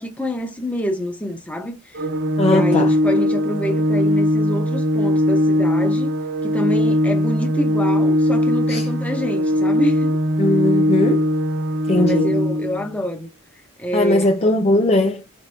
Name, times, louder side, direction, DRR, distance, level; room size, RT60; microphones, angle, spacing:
voice 1, 0.0-2.1 2.4-6.1 6.4-10.2 11.9-13.3 13.8-14.3, equal, 5° left, 0.9 m, -26 dB
Organ, 1.9-12.9, left 1 dB, 55° right, 0.5 m, -19 dB
voice 2, 2.4-2.9 8.7-8.9 10.4-11.3 11.9-12.3 13.9-15.3, left 1 dB, 30° left, 0.5 m, -19 dB
4.1 x 3.4 x 2.6 m
head